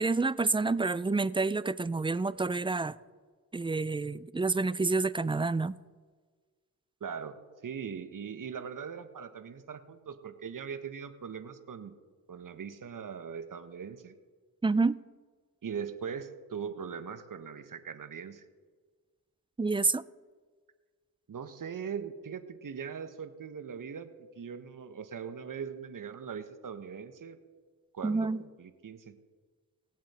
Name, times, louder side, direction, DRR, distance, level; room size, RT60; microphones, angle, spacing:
voice 1, 0.0-3.0 3.5-5.7 14.6-15.0 19.6-20.0 28.0-28.4, right 3 dB, 15° right, 17 dB, 0.4 m, -28 dB
voice 2, 7.0-12.0 12.3-14.1 15.6-18.5 21.3-24.1 24.4-27.4 27.9-29.2, right 7 dB, 50° right, 10 dB, 1.2 m, -40 dB
19.5 x 7.4 x 4.3 m, 1.5 s
supercardioid pair, 45°, 40 cm